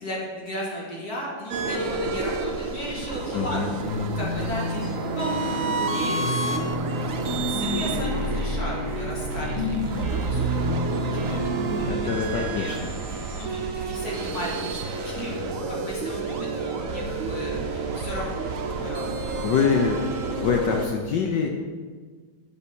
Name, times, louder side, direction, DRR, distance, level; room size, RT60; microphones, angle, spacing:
voice 1, 0.0-3.8 4.2-5.4 5.7-12.9 13.1-18.5 18.8-19.4, equal, 45° left, -4 dB, 2.0 m, -36 dB
sound 1, 1.5-20.9, right 3 dB, 85° right, 0.7 m, -30 dB
voice 2, 3.3-3.7 11.9-12.9 19.4-20.1 20.4-21.5, left 6 dB, 70° left, 1 dB, 1.1 m, -24 dB
sound 2, 3.8-11.8, left 1 dB, 5° left, 2.3 m, -30 dB
6.7 x 5.6 x 6.0 m, 1.5 s
omnidirectional pair, 2.4 m